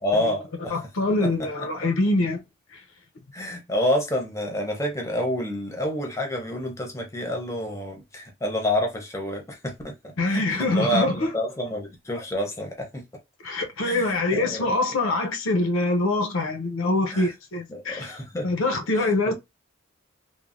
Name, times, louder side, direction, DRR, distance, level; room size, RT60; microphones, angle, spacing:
voice 1, 0.0-0.8 1.2-1.7 3.3-9.9 10.2-13.0 13.8-15.0 17.1-17.3 17.7-18.5 18.9-19.3, left 1 dB, 15° left, 0.7 m, -28 dB
voice 2, 0.7-2.4 10.2-11.3 13.4-18.2 18.4-19.3, left 2 dB, 80° left, 0.6 m, -24 dB
3.2 x 2.1 x 2.5 m
head